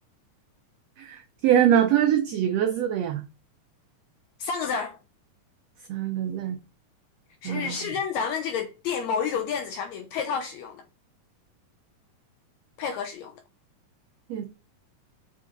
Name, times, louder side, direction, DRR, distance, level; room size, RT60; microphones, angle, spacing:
voice 1, 1.0-3.2 5.9-6.6 7.4-7.7 14.3-14.4, right 10 dB, 85° right, 1.4 m, -23 dB
voice 2, 4.4-5.0 7.4-10.8 12.8-13.3, left 6 dB, 80° left, 1.6 m, -30 dB
7.4 x 3.8 x 3.8 m
omnidirectional pair, 3.7 m